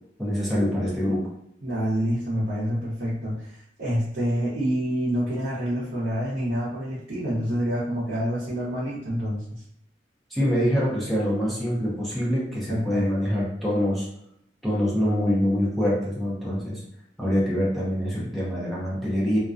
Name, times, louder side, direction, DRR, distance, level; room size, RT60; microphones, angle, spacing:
voice 1, 0.2-1.2 10.3-14.0 14.6-16.8 17.2-19.4, equal, ahead, -7 dB, 0.5 m, -25 dB
voice 2, 1.6-9.6 12.7-13.1, equal, 55° right, -9 dB, 0.7 m, -27 dB
2.3 x 2.2 x 2.4 m, 0.76 s
head